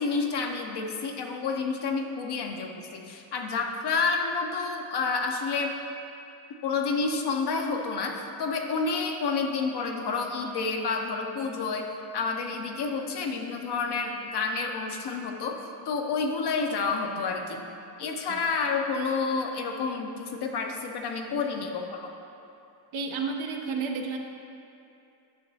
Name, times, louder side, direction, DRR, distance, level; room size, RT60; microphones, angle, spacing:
voice 1, 0.0-5.8 6.6-17.7 18.0-22.1, left 4 dB, 55° left, 3 dB, 0.9 m, -29 dB
voice 2, 22.9-24.2, right 4 dB, 75° right, 2 dB, 0.9 m, -31 dB
9.8 x 5.9 x 2.8 m, 2.7 s
cardioid pair, 75°, 47 cm